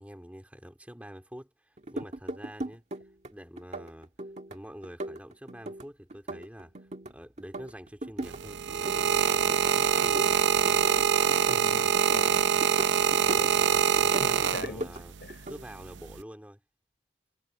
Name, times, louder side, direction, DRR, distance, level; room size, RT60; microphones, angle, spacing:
voice 1, 0.0-2.8 3.3-4.1 4.5-10.9 14.0-15.1 15.5-16.6, equal, 10° right, 3.2 m, -46 dB
sound 1, 1.8-3.3 3.6-4.6 4.8-7.1 7.4-8.4 8.7-9.7 10.0-12.3 12.6-13.7 14.0-15.0 15.3-15.6, right 1 dB, 35° right, 1.7 m, -38 dB
sound 2, 8.2-15.1 15.9-16.2, right 7 dB, 80° right, 0.6 m, -24 dB
voice 2, 11.5-12.6 13.4-14.9 15.2-15.4, left 1 dB, 60° left, 4.6 m, -42 dB
head